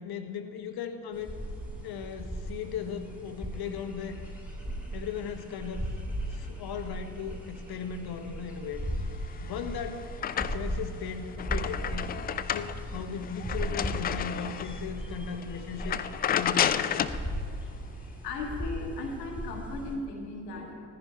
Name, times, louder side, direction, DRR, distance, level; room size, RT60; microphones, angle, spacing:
voice 1, 0.0-1.3 1.8-4.2 4.9-8.8 9.4-10.1 10.3-12.1 12.5-16.0 16.3-17.2, left 7 dB, 50° left, 7 dB, 1.2 m, -37 dB
sound 1, 1.1-19.9, right 1 dB, 5° right, 3.9 m, -37 dB
sound 2, 9.3-10.9 11.2-14.8 15.3-15.4 15.8-17.2, left 9 dB, 20° left, 0.3 m, -31 dB
voice 2, 18.2-20.7, left 3 dB, 75° left, 2 dB, 1.5 m, -37 dB
16.0 x 14.5 x 3.3 m, 2.3 s
figure-of-eight pair, 45°, 48 cm